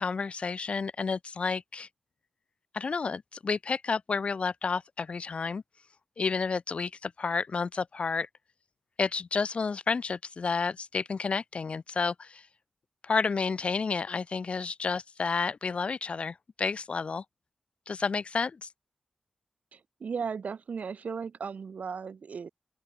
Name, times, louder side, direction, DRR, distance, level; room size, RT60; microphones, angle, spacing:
voice 1, 0.0-1.9 2.7-5.6 6.2-8.3 9.0-12.5 13.0-17.2 17.9-18.7, left 5 dB, 50° left, 0.7 m, -30 dB
voice 2, 19.7-22.5, right 6 dB, 70° right, 7.8 m, -36 dB
open air
wide cardioid pair, 155°, 3 cm